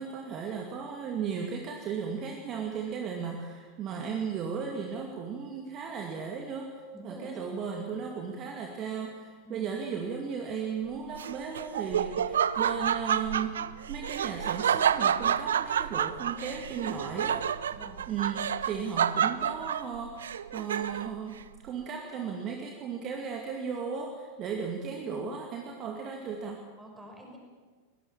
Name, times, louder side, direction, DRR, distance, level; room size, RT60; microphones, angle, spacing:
voice 1, 0.0-13.6 13.9-17.5 18.1-26.6, right 6 dB, 35° right, 2 dB, 2.3 m, -36 dB
voice 2, 6.9-7.5 9.4-9.7 17.7-18.0 24.9-25.2 26.8-27.4, right 1 dB, 5° right, 1 dB, 5.9 m, -46 dB
Laughter, 11.1-21.2, right 8 dB, 65° right, 0.6 m, -29 dB
23.0 x 19.0 x 7.3 m, 1.5 s
figure-of-eight pair, 90°, 0 cm